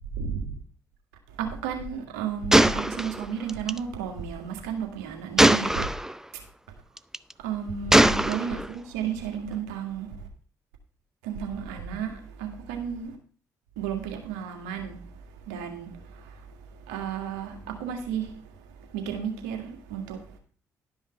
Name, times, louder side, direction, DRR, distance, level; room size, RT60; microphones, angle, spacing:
voice 1, 0.1-0.5 1.4-5.9 7.4-10.3 11.2-13.2 13.8-20.4, right 7 dB, 80° right, 1.9 m, -33 dB
Gunshot gunfire, 2.5-3.8 5.4-6.1 7.0-7.3 7.9-8.7, right 1 dB, 5° right, 0.5 m, -20 dB
12.0 x 5.7 x 5.6 m
hypercardioid pair, 45°, 8 cm